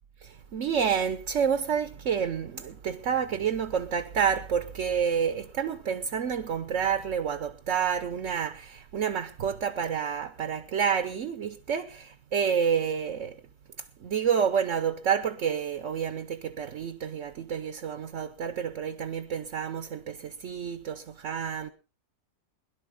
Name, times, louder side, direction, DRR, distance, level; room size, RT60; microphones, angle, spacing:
voice 1, 0.2-13.4 14.0-21.7, right 7 dB, 50° right, 1.1 m, -29 dB
21.5 x 11.5 x 3.8 m
omnidirectional pair, 1.8 m